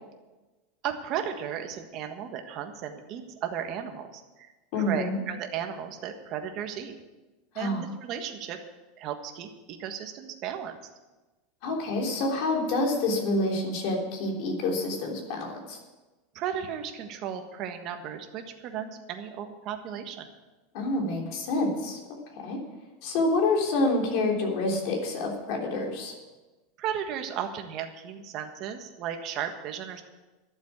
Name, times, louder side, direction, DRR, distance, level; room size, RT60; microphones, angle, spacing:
voice 1, 0.8-4.5 4.7-7.0 7.5-8.6 9.0-10.8 16.3-20.3 26.8-30.0, right 8 dB, 40° right, 5 dB, 1.5 m, -35 dB
voice 2, 4.7-5.2 7.5-7.8 11.6-15.8 20.7-22.6 23.0-26.1, left 2 dB, 55° left, 1 dB, 3.3 m, -27 dB
12.0 x 7.4 x 9.4 m, 1.2 s
supercardioid pair, 155°, 0 cm